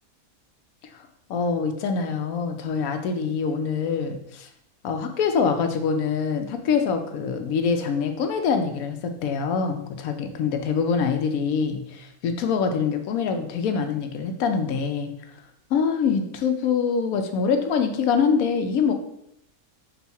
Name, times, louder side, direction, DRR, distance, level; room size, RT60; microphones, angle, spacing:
voice 1, 1.3-4.5 4.8-15.1 15.7-18.9, left 6 dB, 80° left, 6 dB, 1.1 m, -24 dB
5.5 x 2.3 x 4.1 m, 0.75 s
omnidirectional pair, 1.5 m